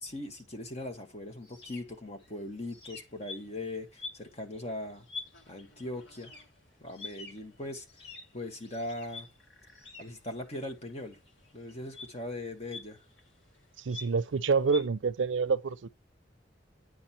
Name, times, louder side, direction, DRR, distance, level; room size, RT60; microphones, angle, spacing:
voice 1, 0.0-5.1 5.5-6.3 6.8-7.9 8.3-9.3 10.0-11.2 11.5-13.0, left 1 dB, 35° left, 1.7 m, -40 dB
sound 1, 0.8-13.9, left 3 dB, 60° left, 2.0 m, -57 dB
sound 2, 2.2-2.4 2.8-10.2 10.5-14.9, left 4 dB, 85° left, 2.1 m, -48 dB
voice 2, 13.8-15.9, right 5 dB, 75° right, 0.5 m, -27 dB
9.8 x 5.5 x 4.4 m
head